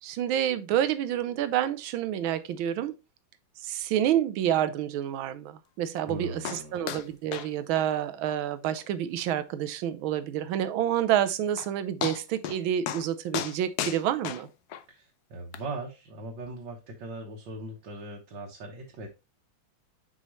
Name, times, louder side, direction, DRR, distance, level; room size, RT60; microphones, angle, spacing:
voice 1, 0.0-2.9 3.6-14.5, right 11 dB, 85° right, 1.5 m, -28 dB
voice 2, 6.0-6.8 14.9-19.1, right 2 dB, 70° right, 1.8 m, -39 dB
sound 1, 6.4-6.6 6.9-7.1 7.3-7.5 7.8-7.9 8.3-8.4 8.8-8.9 9.3-9.4 11.1-11.2 11.6-11.7 12.0-12.6 12.9-13.1 13.3-14.8 15.5-15.6, left 9 dB, 70° left, 1.0 m, -33 dB
6.2 x 5.1 x 3.1 m
omnidirectional pair, 2.2 m